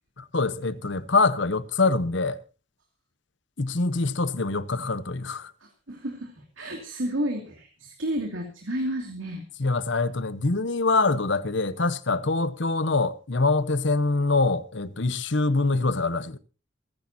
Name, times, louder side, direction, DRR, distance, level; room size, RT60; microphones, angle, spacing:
voice 1, 0.2-2.4 3.6-5.5 9.6-16.4, left 3 dB, 60° left, 1.0 m, -24 dB
voice 2, 5.6-9.4, right 1 dB, 75° right, 2.6 m, -31 dB
27.5 x 10.5 x 2.8 m
head